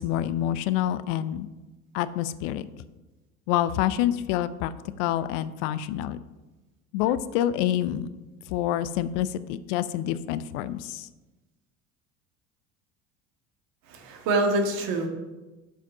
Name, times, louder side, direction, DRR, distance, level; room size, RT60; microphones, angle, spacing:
voice 1, 0.0-1.5 1.9-2.7 3.5-4.7 5.0-6.2 6.9-8.1 8.5-11.1, left 12 dB, 65° left, 15 dB, 0.6 m, -27 dB
voice 2, 13.9-15.1, right 2 dB, 60° right, 3 dB, 1.8 m, -25 dB
7.3 x 5.7 x 5.5 m, 1.1 s
hypercardioid pair, 75°, 40 cm